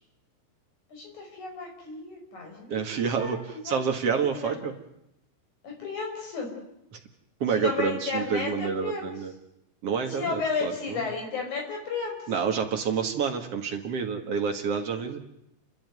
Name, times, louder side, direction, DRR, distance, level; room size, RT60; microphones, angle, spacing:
voice 1, 0.9-2.7 2.9-3.8 4.3-4.6 5.6-6.5 7.5-9.1 10.1-12.2, left 4 dB, 45° left, 1 dB, 6.7 m, -33 dB
voice 2, 2.7-3.4 3.6-4.7 7.4-9.3 9.8-11.0 12.3-15.2, right 6 dB, 50° right, 4 dB, 1.9 m, -28 dB
29.5 x 13.0 x 9.5 m, 0.81 s
omnidirectional pair, 5.0 m